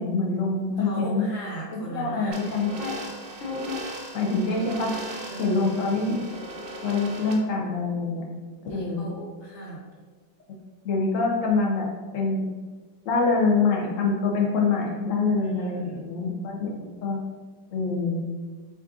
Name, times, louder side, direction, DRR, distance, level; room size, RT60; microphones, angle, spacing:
voice 1, 0.0-1.3 1.7-2.9 3.4-3.8 4.1-4.9 5.4-6.2 6.8-8.2 8.7-9.1 10.8-11.9 12.1-12.5 13.1-17.2 17.7-18.2, left 3 dB, 90° left, -1 dB, 0.7 m, -25 dB
voice 2, 0.8-2.3 5.3-5.8 8.7-9.8 15.4-16.1, right 1 dB, 45° left, -5 dB, 1.1 m, -37 dB
sound 1, 2.3-7.3, right 2 dB, 75° right, 1.4 m, -38 dB
7.1 x 2.6 x 2.4 m, 1.4 s
omnidirectional pair, 2.1 m